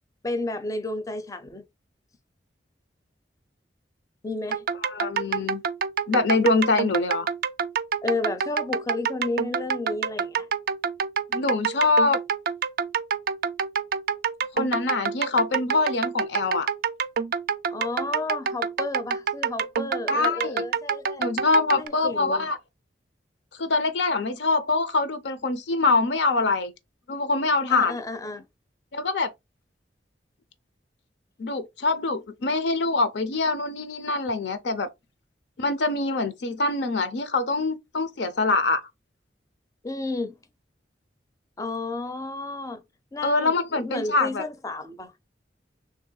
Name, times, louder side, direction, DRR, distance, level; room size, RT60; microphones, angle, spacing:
voice 1, 0.2-1.6 4.2-4.7 8.0-10.5 17.7-21.2 21.8-22.5 27.7-28.5 39.8-40.3 41.6-42.8 43.1-45.1, left 2 dB, 20° left, 0.4 m, -32 dB
sound 1, 4.5-21.9, right 6 dB, 55° right, 0.3 m, -27 dB
voice 2, 4.8-5.6 6.1-7.3 11.3-12.2 14.5-16.7 20.1-20.6 21.2-22.6 23.6-26.7 27.1-28.0 28.9-29.3 31.4-34.9 35.6-38.8 43.2-44.4, left 3 dB, 75° left, 0.6 m, -24 dB
3.3 x 2.7 x 3.8 m
head